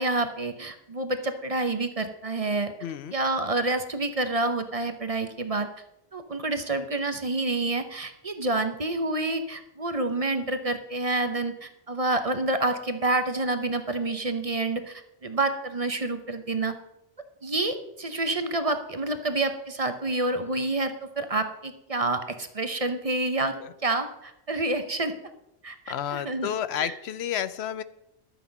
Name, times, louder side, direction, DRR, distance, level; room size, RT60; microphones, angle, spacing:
voice 1, 0.0-2.7 3.1-5.7 6.1-16.7 17.4-23.5 23.8-25.1 25.6-26.5 26.8-26.9, right 2 dB, 35° right, 8 dB, 0.9 m, -28 dB
voice 2, 2.8-3.1 23.6-23.7 25.9-27.8, left 10 dB, 85° left, 15 dB, 0.9 m, -31 dB
12.0 x 8.2 x 5.3 m, 0.84 s
omnidirectional pair, 1.1 m